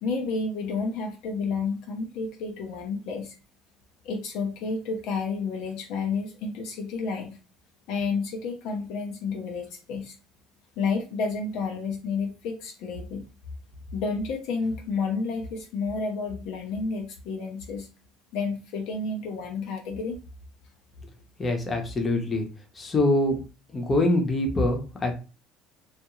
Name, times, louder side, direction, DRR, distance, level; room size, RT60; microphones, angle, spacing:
voice 1, 0.0-3.3 4.0-7.4 7.9-10.2 10.8-13.2 13.9-17.9 18.3-20.2, left 4 dB, 70° left, 3 dB, 0.6 m, -30 dB
voice 2, 21.4-22.5 22.8-23.4 23.7-25.2, left 2 dB, 25° left, 3 dB, 0.8 m, -24 dB
2.4 x 2.1 x 3.0 m, 0.33 s
supercardioid pair, 95°, 0 cm